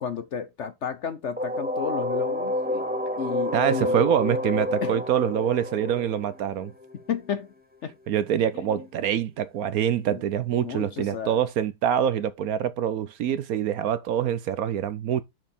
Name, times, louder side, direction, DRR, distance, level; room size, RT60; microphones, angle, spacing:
voice 1, 0.0-2.9 3.2-4.0 4.8-5.0 7.1-7.5 7.8-8.0 8.5-8.9 10.1-10.2 10.6-11.4, left 7 dB, 60° left, 0.8 m, -32 dB
sound 1, 1.4-7.1, left 1 dB, 5° right, 0.8 m, -29 dB
voice 2, 3.5-6.7 8.1-15.2, right 9 dB, 65° right, 1.0 m, -25 dB
6.4 x 6.4 x 4.2 m
omnidirectional pair, 1.8 m